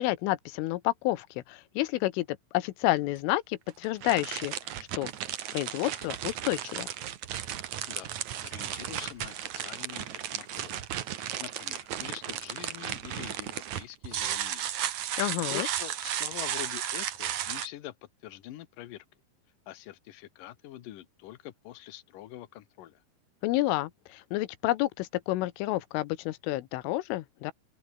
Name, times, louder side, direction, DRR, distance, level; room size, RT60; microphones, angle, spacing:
voice 1, 0.0-4.5 5.0-5.1 5.5-6.9 15.2-15.7 23.4-27.5, left 17 dB, 90° left, 3.7 m, -30 dB
sound 1, 2.8-2.9 3.7-17.7, right 11 dB, 65° right, 1.9 m, -34 dB
voice 2, 8.4-10.7 11.4-14.8 15.2-18.0 18.2-19.0 19.7-23.0, left 14 dB, 65° left, 2.2 m, -45 dB
open air
omnidirectional pair, 5.6 m